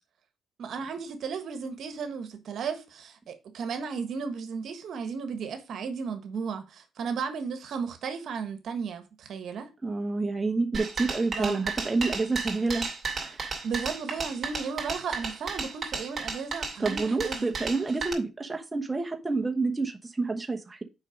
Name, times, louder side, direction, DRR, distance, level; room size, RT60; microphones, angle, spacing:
voice 1, 0.6-9.7 11.3-11.6 13.6-17.5, right 5 dB, 65° right, 1.3 m, -34 dB
voice 2, 9.8-12.9 13.1-13.5 16.8-20.8, right 3 dB, 20° right, 1.1 m, -28 dB
sound 1, 10.7-18.1, right 4 dB, 40° right, 2.8 m, -33 dB
6.4 x 5.3 x 5.0 m
cardioid pair, 90°, 0 cm